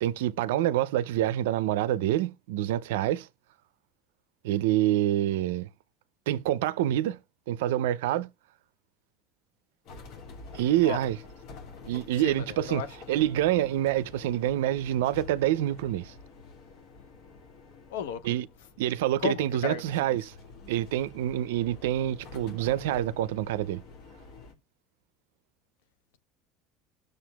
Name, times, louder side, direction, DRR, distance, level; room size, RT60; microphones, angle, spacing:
voice 1, 0.0-3.3 4.4-5.7 6.3-7.2 7.5-8.3 10.5-11.2 11.9-16.1 18.3-18.4 18.8-20.3 20.7-23.8, right 13 dB, 85° right, 0.4 m, -27 dB
sound 1, 9.9-24.5, left 4 dB, 65° left, 1.7 m, -48 dB
voice 2, 12.1-13.2 17.9-18.3 19.2-20.3, left 7 dB, 85° left, 0.8 m, -35 dB
19.0 x 6.6 x 2.3 m
supercardioid pair, 85°, 0 cm